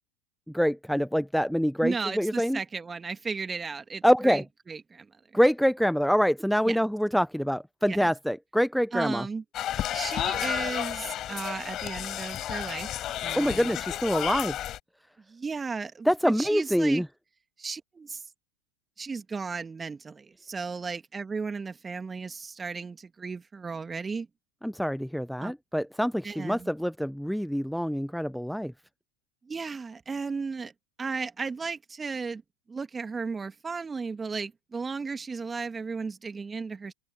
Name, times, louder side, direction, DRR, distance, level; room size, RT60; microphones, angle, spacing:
voice 1, 0.5-2.6 4.0-4.4 5.3-9.3 13.3-14.6 16.0-17.1 24.6-28.7, equal, ahead, 0.8 m, -25 dB
voice 2, 1.8-5.1 6.7-6.8 7.9-8.1 8.9-9.4 9.9-12.9 13.2-13.7 15.3-17.0 17.6-18.2 19.0-24.3 25.4-25.5 26.2-26.7 29.5-30.7 31.0-32.4 32.7-36.9, right 4 dB, 20° right, 2.0 m, -35 dB
sound 1, 9.5-14.8, left 12 dB, 40° left, 5.7 m, -32 dB
open air
hypercardioid pair, 90°, 0 cm